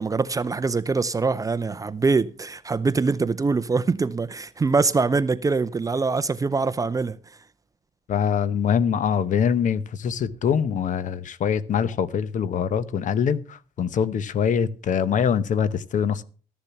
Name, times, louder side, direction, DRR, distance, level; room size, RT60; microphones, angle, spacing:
voice 1, 0.0-7.4, right 4 dB, 20° right, 0.6 m, -24 dB
voice 2, 8.1-16.2, left 7 dB, 50° left, 0.8 m, -24 dB
13.5 x 6.9 x 5.7 m
cardioid pair, 110°, 17 cm